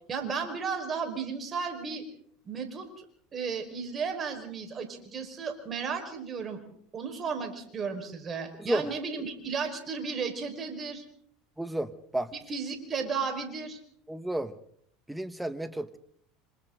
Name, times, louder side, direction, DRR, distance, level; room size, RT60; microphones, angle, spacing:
voice 1, 0.1-2.0 2.4-3.0 3.3-6.6 6.9-11.0 12.5-13.8, right 5 dB, 35° right, 6 dB, 4.9 m, -34 dB
voice 2, 8.6-8.9 11.6-12.3 14.1-14.5 15.1-16.0, right 1 dB, 5° right, 11 dB, 1.6 m, -32 dB
26.5 x 26.0 x 3.9 m, 0.64 s
hypercardioid pair, 85°, 0 cm